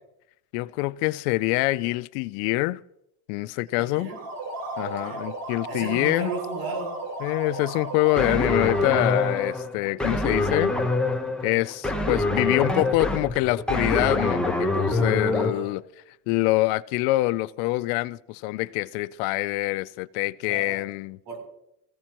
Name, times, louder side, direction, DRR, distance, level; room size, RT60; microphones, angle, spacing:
voice 1, 0.5-2.8 3.3-4.1 4.8-6.3 7.2-10.8 11.4-15.8 16.3-21.2, left 20 dB, 75° left, 0.6 m, -25 dB
voice 2, 3.8-4.2 4.8-5.2 5.7-6.9 15.5-15.6 20.5-20.8 21.3-21.4, right 4 dB, 50° right, 7.6 m, -34 dB
sound 1, 4.0-9.7, right 2 dB, 35° right, 6.5 m, -35 dB
sound 2, 8.2-15.5, left 2 dB, ahead, 0.8 m, -25 dB
21.5 x 16.0 x 3.0 m
cardioid pair, 175°, 49 cm